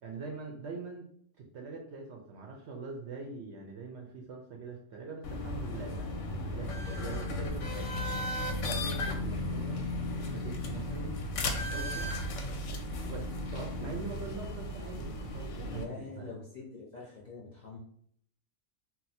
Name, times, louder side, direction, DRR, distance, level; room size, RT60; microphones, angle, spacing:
voice 1, 0.0-1.1 1.4-8.2 8.6-9.8 10.2-11.1 11.4-12.1 13.0-16.2, right 3 dB, 65° right, 1 dB, 0.7 m, -43 dB
sound 1, 5.2-15.8, left 1 dB, 70° left, 0.8 m, -35 dB
voice 2, 15.6-17.8, left 4 dB, 40° left, -4 dB, 0.6 m, -44 dB
2.7 x 2.1 x 4.1 m, 0.64 s
omnidirectional pair, 1.4 m